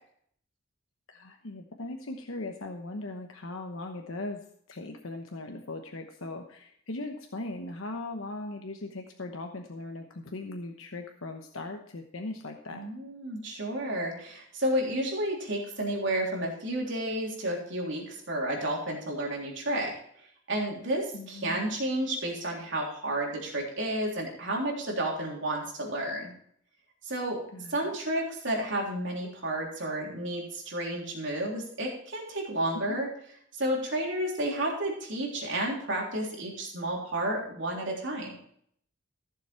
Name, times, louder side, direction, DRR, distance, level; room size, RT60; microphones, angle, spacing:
voice 1, 1.1-4.4 4.7-12.8 21.1-21.7 27.5-27.7 32.7-32.8, left 2 dB, 75° left, 4 dB, 1.0 m, -39 dB
voice 2, 12.7-19.9 20.5-26.3 27.0-27.4 27.7-33.1 33.5-38.4, right 1 dB, 60° right, -1 dB, 3.4 m, -31 dB
15.0 x 7.3 x 4.4 m, 0.65 s
head